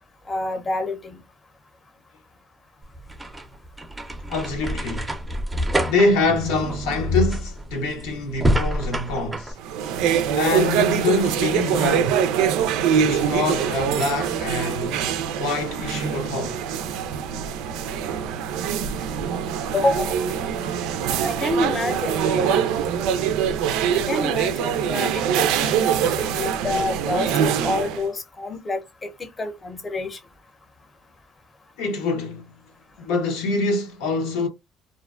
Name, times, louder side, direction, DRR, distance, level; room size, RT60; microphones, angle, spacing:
voice 1, 0.3-1.2 19.7-20.2 21.2-22.7 23.9-30.2, left 2 dB, 25° left, 0.7 m, -28 dB
sound 1, 2.8-9.5, equal, 10° right, 0.5 m, -27 dB
voice 2, 4.3-5.1 5.9-9.6 10.3-12.3 12.9-15.1 15.4-16.6 26.4-26.5 31.8-32.5 33.0-34.5, left 3 dB, 85° left, 0.9 m, -25 dB
sound 2, 9.6-28.1, right 8 dB, 80° right, 0.3 m, -23 dB
2.5 x 2.2 x 2.3 m
supercardioid pair, 90°, 0 cm